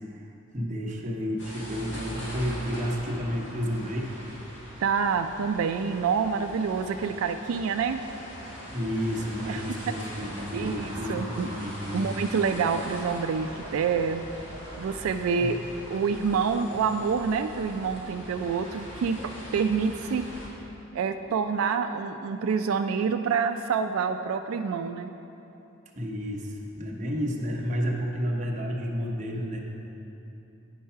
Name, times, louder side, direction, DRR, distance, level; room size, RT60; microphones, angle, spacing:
voice 1, 0.5-4.2 8.7-12.2 15.4-15.6 26.0-29.6, equal, 35° right, -1 dB, 0.9 m, -31 dB
sound 1, 1.4-20.5, equal, 60° left, 2.0 m, -41 dB
voice 2, 4.8-8.0 9.5-9.6 10.5-11.5 11.9-14.2 14.7-15.6 15.9-19.2 19.5-20.3 20.9-25.1, right 6 dB, 90° right, 7 dB, 0.3 m, -27 dB
9.3 x 5.5 x 5.6 m, 3.0 s
head